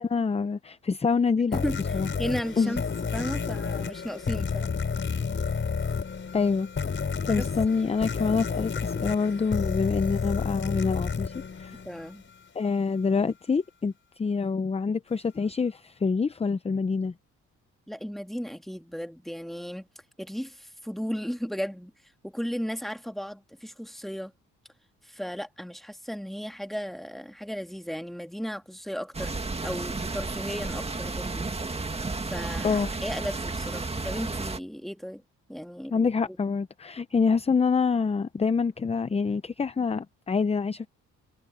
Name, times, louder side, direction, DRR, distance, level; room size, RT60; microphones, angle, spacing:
voice 1, 0.0-1.6 1.9-2.1 2.6-2.8 6.3-6.7 7.3-11.3 11.6-11.8 12.5-17.1 32.6-32.9 35.9-40.9, left 5 dB, 20° left, 0.6 m, -26 dB
sound 1, 1.5-12.3, left 5 dB, 40° left, 5.8 m, -30 dB
voice 2, 2.2-2.8 3.1-4.7 7.3-7.5 11.9-12.3 17.9-19.9 20.2-21.9 22.2-24.3 25.0-31.5 32.2-35.2 35.5-36.4, equal, ahead, 1.9 m, -35 dB
sound 2, 29.1-34.6, right 3 dB, 20° right, 2.1 m, -32 dB
cardioid pair, 90°, 30 cm